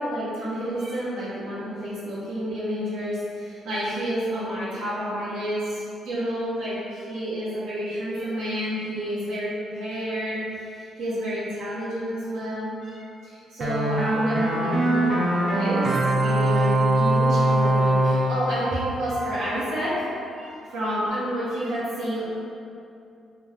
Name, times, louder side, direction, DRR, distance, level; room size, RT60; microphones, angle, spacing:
voice 1, 0.0-15.9 16.2-19.9 20.3-22.2, equal, 90° right, -9 dB, 1.4 m, -30 dB
sound 1, 13.6-19.7, right 1 dB, 40° right, 0.8 m, -22 dB
4.0 x 2.6 x 3.5 m, 2.6 s
cardioid pair, 90°, 0 cm